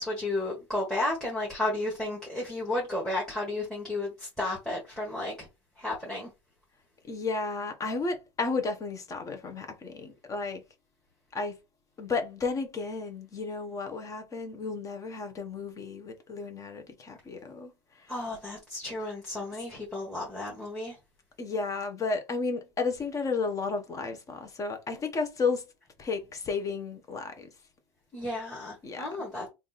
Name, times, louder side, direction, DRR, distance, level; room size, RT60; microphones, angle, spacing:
voice 1, 0.0-5.5 5.8-6.3 18.1-21.0 28.1-29.5, left 2 dB, 5° left, 1.3 m, -33 dB
voice 2, 7.1-10.6 11.3-11.6 12.0-18.1 21.4-25.6 26.0-27.5 28.8-29.1, left 4 dB, 20° left, 0.9 m, -33 dB
3.5 x 2.5 x 4.0 m
supercardioid pair, 135°, 15 cm